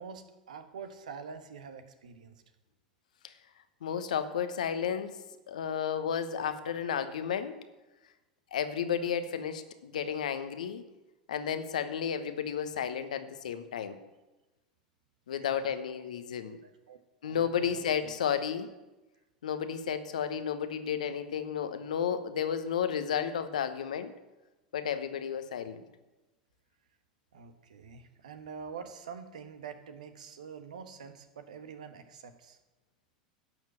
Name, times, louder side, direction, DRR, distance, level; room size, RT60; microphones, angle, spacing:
voice 1, 0.0-2.4 15.4-15.7 16.6-17.0 17.2-18.1 27.3-32.6, right 6 dB, 75° right, 8 dB, 1.3 m, -46 dB
voice 2, 3.8-5.1 5.5-7.6 8.5-10.8 11.3-14.0 15.3-16.6 17.2-18.7 19.4-24.1 24.7-25.8, left 8 dB, 70° left, 10 dB, 1.1 m, -32 dB
11.0 x 7.3 x 7.6 m, 1.1 s
figure-of-eight pair, 85°, 4 cm